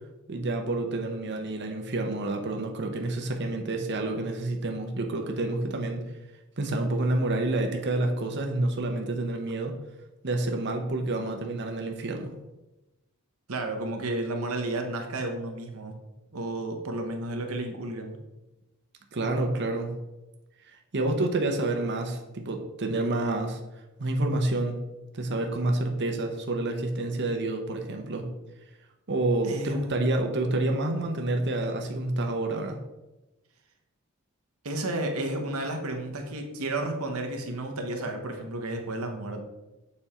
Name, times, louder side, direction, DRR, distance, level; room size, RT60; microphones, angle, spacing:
voice 1, 0.3-6.1 6.6-9.7 10.2-12.3 19.1-20.0 20.7-23.6 24.0-24.8 25.1-28.3 29.1-32.8, right 2 dB, 55° right, 4 dB, 0.8 m, -28 dB
voice 2, 13.5-16.0 16.3-18.2 29.4-30.0 34.6-39.4, right 1 dB, 80° right, 4 dB, 1.0 m, -32 dB
6.9 x 4.3 x 4.3 m, 1.0 s
head